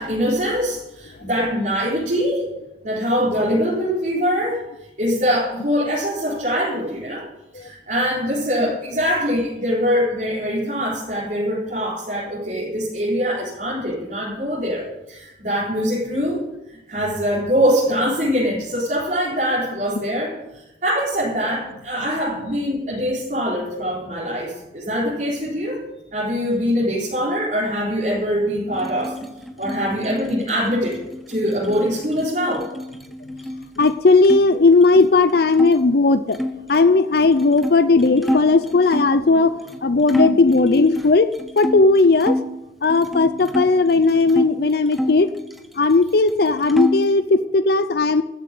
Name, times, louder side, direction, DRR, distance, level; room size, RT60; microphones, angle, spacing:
voice 1, 0.0-2.5 2.8-4.6 5.0-7.3 7.5-16.4 16.9-25.8 26.1-29.2 29.6-31.0 31.3-32.7, equal, 45° right, -8 dB, 4.4 m, -23 dB
sound 1, 28.7-34.4 34.7-35.8 36.3-39.2 39.7-39.8 40.1-42.5 42.9-44.5 44.9-46.0 46.3-47.2, equal, ahead, 0.9 m, -28 dB
voice 2, 33.8-36.4 36.7-41.3 41.6-42.4 42.8-45.3 45.8-48.2, left 3 dB, 55° left, 12 dB, 0.5 m, -16 dB
14.0 x 7.5 x 9.3 m, 0.94 s
head